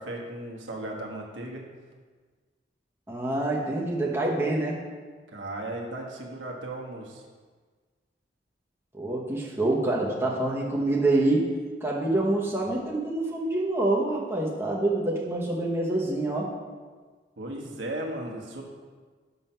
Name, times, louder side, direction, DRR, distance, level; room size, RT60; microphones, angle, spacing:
voice 1, 0.0-1.7 5.3-7.2 17.4-18.6, right 1 dB, 90° right, 0 dB, 1.2 m, -36 dB
voice 2, 3.1-4.8 8.9-11.5 11.8-16.5, right 2 dB, 15° right, -4 dB, 1.0 m, -26 dB
6.1 x 5.5 x 5.6 m, 1.5 s
head